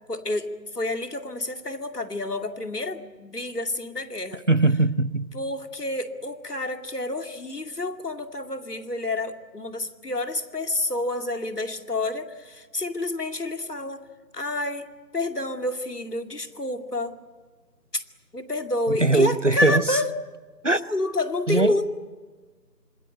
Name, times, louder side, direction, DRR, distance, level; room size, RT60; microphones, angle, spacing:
voice 1, 0.1-4.4 5.3-14.0 14.3-14.9 15.1-17.1 17.9-18.0 18.3-20.1 20.9-21.9, left 2 dB, 65° left, 2.6 m, -29 dB
voice 2, 4.5-5.3 19.0-20.0 20.6-20.8 21.5-21.8, right 2 dB, 45° right, 0.9 m, -21 dB
26.5 x 21.5 x 8.8 m
figure-of-eight pair, 175°, 50 cm